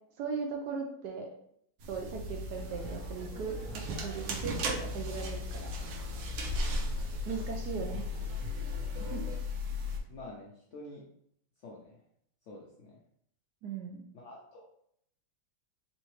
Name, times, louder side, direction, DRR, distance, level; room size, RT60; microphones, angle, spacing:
voice 1, 0.2-1.3 1.9-5.7 7.3-8.1 8.3-8.5 9.1-9.2 13.6-14.0, right 5 dB, 70° right, 2 dB, 1.0 m, -38 dB
sound 1, 1.8-10.0, left 2 dB, 90° right, 1.5 m, -36 dB
sound 2, 2.5-9.4, right 1 dB, 40° right, 2.0 m, -49 dB
voice 2, 10.1-11.0 11.6-12.0 12.5-13.0 14.1-14.6, left 2 dB, 80° left, -3 dB, 0.6 m, -48 dB
3.9 x 3.5 x 3.1 m, 0.70 s
omnidirectional pair, 2.1 m